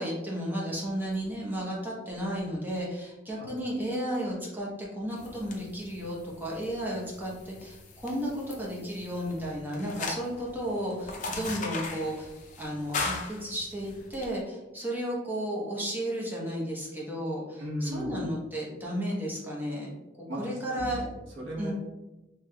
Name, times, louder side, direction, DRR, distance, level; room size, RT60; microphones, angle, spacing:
voice 1, 0.0-12.3 12.6-19.9 20.4-21.0 21.6-21.7, equal, 10° right, -5 dB, 0.8 m, -33 dB
Match smoking, 5.2-14.3, left 3 dB, 45° left, 0.5 m, -39 dB
voice 2, 17.6-18.2 20.3-21.7, equal, 85° right, -4 dB, 1.0 m, -36 dB
3.2 x 3.1 x 2.2 m, 1.1 s
head